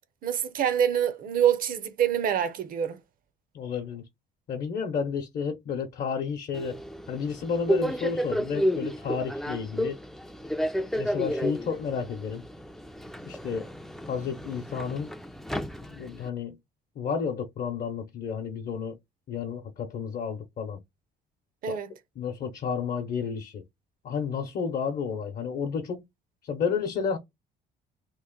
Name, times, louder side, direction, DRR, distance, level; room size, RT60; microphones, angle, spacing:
voice 1, 0.2-3.0 21.6-21.9, right 9 dB, 55° right, 0.6 m, -26 dB
voice 2, 3.5-4.0 4.5-6.8 7.1-10.0 10.9-12.4 13.2-13.6 14.1-15.1 15.9-16.6 17.0-19.0 19.3-20.8 21.7-21.8 22.2-23.6 24.0-26.0 26.4-27.2, left 6 dB, 55° left, 0.8 m, -31 dB
Subway metro underground, 6.5-16.3, equal, ahead, 0.3 m, -32 dB
3.0 x 2.5 x 3.7 m
cardioid pair, 110°, 17 cm